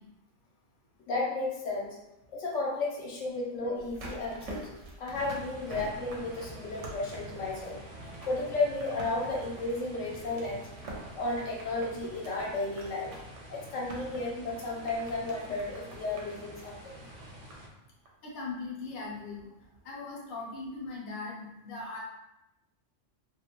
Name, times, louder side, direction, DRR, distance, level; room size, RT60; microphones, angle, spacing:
voice 1, 1.1-2.0 2.3-4.7 5.0-7.8 8.2-10.7 11.1-13.1 13.5-17.0, left 2 dB, 80° left, -2 dB, 1.0 m, -33 dB
sound 1, 3.8-17.8 18.1-18.2, right 1 dB, 80° right, 0.9 m, -47 dB
sound 2, 5.1-17.7, right 1 dB, 55° right, 0.7 m, -48 dB
voice 2, 18.2-19.5 19.8-22.0, left 3 dB, 50° left, -3 dB, 0.7 m, -39 dB
2.4 x 2.1 x 2.8 m, 0.90 s
omnidirectional pair, 1.3 m